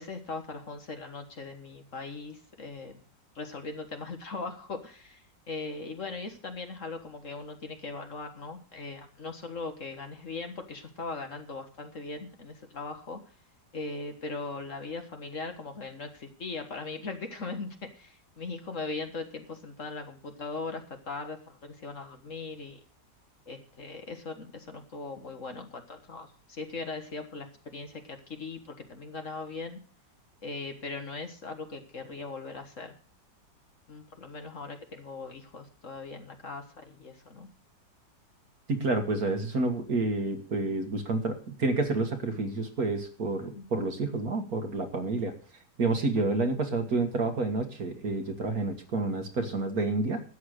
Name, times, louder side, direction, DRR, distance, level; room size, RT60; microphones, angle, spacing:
voice 1, 0.0-3.0 3.3-13.2 13.7-17.7 17.9-22.8 23.5-29.8 30.4-32.9 33.9-37.5 43.5-43.6 45.9-46.2, left 3 dB, 45° left, 6 dB, 1.7 m, -39 dB
voice 2, 38.7-45.3 45.8-50.2, right 3 dB, 55° right, 6 dB, 2.0 m, -29 dB
12.5 x 8.5 x 6.5 m, 0.41 s
omnidirectional pair, 1.9 m